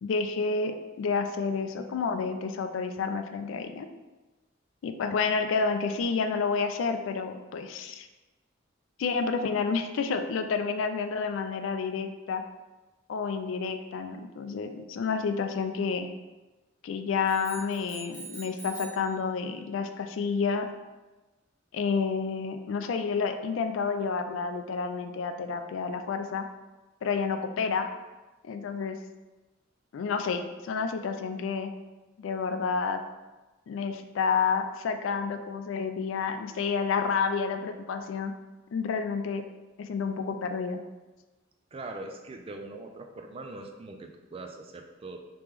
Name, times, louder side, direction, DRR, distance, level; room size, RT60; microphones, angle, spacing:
voice 1, 0.0-3.9 4.8-8.1 9.0-12.4 13.1-16.1 16.8-20.7 21.7-26.5 27.0-27.9 28.4-29.0 29.9-31.7 32.2-33.0 33.7-38.3 38.7-39.4 39.8-40.8, left 5 dB, 70° left, 7 dB, 0.3 m, -29 dB
sound 1, 17.2-19.1, right 3 dB, 55° right, 1.2 m, -44 dB
voice 2, 41.7-45.2, right 2 dB, 30° right, 4 dB, 0.3 m, -41 dB
3.2 x 2.9 x 3.5 m, 1.1 s
head